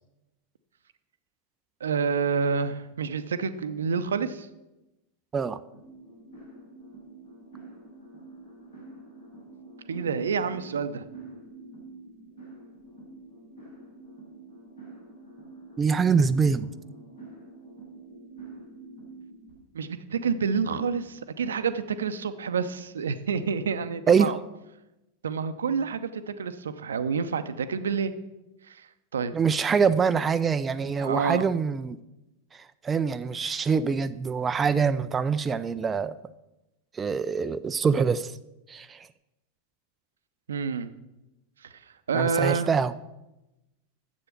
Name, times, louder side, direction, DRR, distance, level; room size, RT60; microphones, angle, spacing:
voice 1, 1.8-4.5 9.9-11.0 19.7-24.4 25.2-28.1 28.7-29.3 31.0-31.5 40.5-40.9 42.1-42.7, right 6 dB, 65° right, 11 dB, 0.6 m, -28 dB
sound 1, 5.7-19.5, right 2 dB, 70° left, 4.9 m, -47 dB
voice 2, 15.8-16.7 24.1-24.4 29.3-32.0 32.5-36.1 36.9-38.3 38.7-39.1 42.1-42.9, right 5 dB, 20° right, 12 dB, 0.4 m, -24 dB
9.9 x 7.8 x 6.0 m, 0.97 s
figure-of-eight pair, 90°, 0 cm